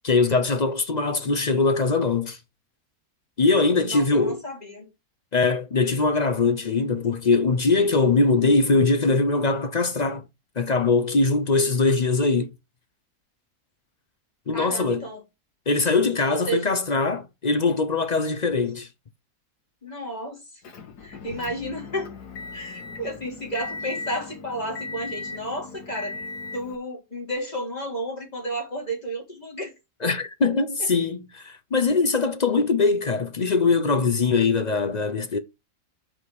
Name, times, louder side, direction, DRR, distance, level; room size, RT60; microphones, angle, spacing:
voice 1, 0.0-2.4 3.4-4.4 5.3-10.2 10.6-12.5 14.5-15.0 15.7-18.9 30.0-35.4, left 3 dB, 45° left, 0.5 m, -22 dB
voice 2, 3.8-4.9 14.5-15.2 16.3-16.7 19.8-20.6 21.0-22.1 22.5-26.3 26.5-29.7 30.0-30.1 30.8-30.9, right 1 dB, 25° left, 3.4 m, -32 dB
Motor vehicle (road) / Engine, 20.6-26.8, left 4 dB, 85° left, 1.9 m, -37 dB
6.1 x 4.9 x 6.1 m
omnidirectional pair, 1.7 m